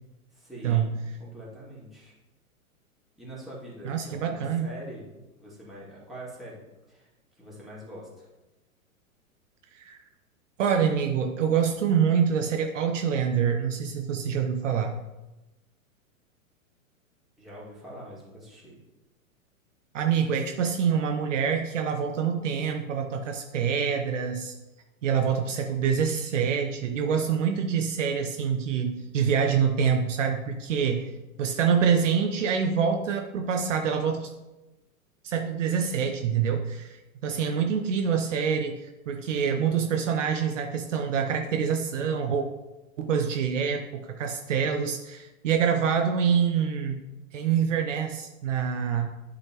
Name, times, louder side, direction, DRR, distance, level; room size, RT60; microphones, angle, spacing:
voice 1, 0.3-2.1 3.2-6.6 6.9-7.1 7.4-8.3 17.4-18.8, right 1 dB, ahead, -7 dB, 2.3 m, -44 dB
voice 2, 3.8-4.7 9.7-10.0 10.6-15.0 19.9-24.5 25.0-31.1 31.4-34.3 35.2-42.5 43.0-47.0 47.3-49.1, right 7 dB, 60° right, 4 dB, 0.8 m, -26 dB
11.0 x 4.0 x 3.0 m, 1.0 s
figure-of-eight pair, 105°, 42 cm